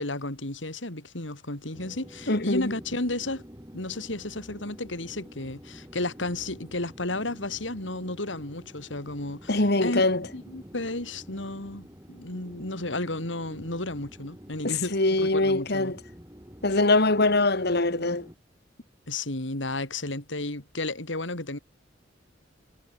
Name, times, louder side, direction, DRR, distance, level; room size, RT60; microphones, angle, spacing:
voice 1, 0.0-3.4 3.7-10.0 10.3-15.9 16.7-16.8 19.1-21.6, left 2 dB, 75° left, 4.0 m, -33 dB
sound 1, 1.7-18.4, equal, 15° right, 7.3 m, -48 dB
voice 2, 2.3-2.7 9.5-10.3 14.6-16.0 16.6-18.3, left 2 dB, 60° left, 2.7 m, -23 dB
head